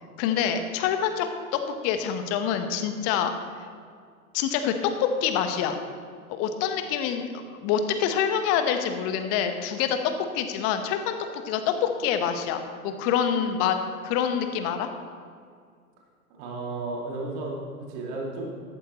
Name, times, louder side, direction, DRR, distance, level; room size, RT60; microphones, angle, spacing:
voice 1, 0.2-3.3 4.3-5.8 6.3-10.0 10.3-13.8 14.0-14.9, left 8 dB, 35° left, 7 dB, 1.1 m, -26 dB
voice 2, 16.4-18.5, right 2 dB, 40° right, -2 dB, 2.5 m, -33 dB
14.5 x 12.0 x 3.1 m, 2.1 s
figure-of-eight pair, 100°, 45 cm